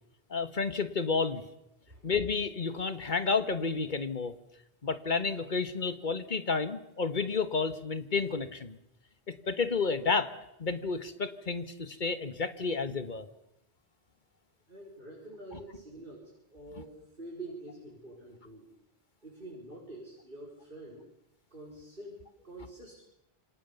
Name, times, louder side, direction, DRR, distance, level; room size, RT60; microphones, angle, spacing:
voice 1, 0.3-1.4 2.0-4.4 4.8-8.8 9.5-10.3 10.6-13.3 15.5-15.6, left 4 dB, 50° left, 10 dB, 1.7 m, -31 dB
voice 2, 1.9-2.2 14.7-18.7 19.2-21.1 21.5-23.0, right 2 dB, 55° right, -2 dB, 5.0 m, -47 dB
28.0 x 24.5 x 7.1 m, 0.86 s
omnidirectional pair, 1.1 m